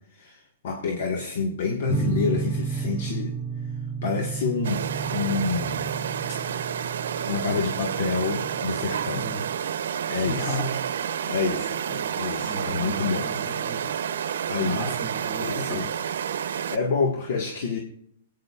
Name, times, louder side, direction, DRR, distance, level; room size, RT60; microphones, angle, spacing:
voice 1, 0.1-3.3 4.0-4.8 5.1-5.9 7.2-9.3 10.1-10.6 11.2-13.3 14.5-14.8 15.4-15.9 16.7-17.8, left 5 dB, 60° left, 2 dB, 1.6 m, -28 dB
sound 1, 1.9-9.5, right 4 dB, 10° right, 0.6 m, -32 dB
sound 2, 4.6-16.8, right 8 dB, 85° right, 0.7 m, -30 dB
voice 2, 10.1-10.8 12.0-12.1 12.4-13.8 14.6-15.9, equal, 40° left, 0 dB, 5.6 m, -34 dB
24.0 x 9.1 x 2.4 m, 0.69 s
hypercardioid pair, 165°, 0 cm